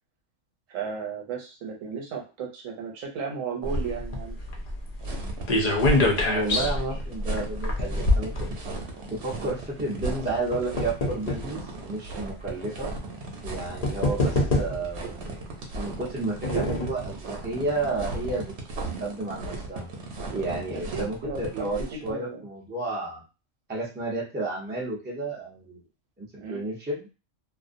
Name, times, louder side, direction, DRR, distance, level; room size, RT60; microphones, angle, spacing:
voice 1, 0.7-4.4 6.5-7.0 16.5-16.8 20.7-22.4 26.3-26.6, right 6 dB, 85° right, 1 dB, 1.1 m, -35 dB
sound 1, 3.6-9.1 10.0-11.5 12.3-12.4 13.4-13.5 13.8-15.0 15.9-17.0 17.5-17.6 17.8-17.9, left 2 dB, 65° left, 0.4 m, -26 dB
sound 2, 5.0-22.1, right 2 dB, 60° right, 0.9 m, -36 dB
voice 2, 6.2-8.6 9.1-12.9 13.4-15.2 15.7-19.9 20.3-23.2 23.7-25.8 26.2-27.1, right 2 dB, 15° right, -3 dB, 0.4 m, -32 dB
2.4 x 2.1 x 2.5 m, 0.31 s
omnidirectional pair, 1.4 m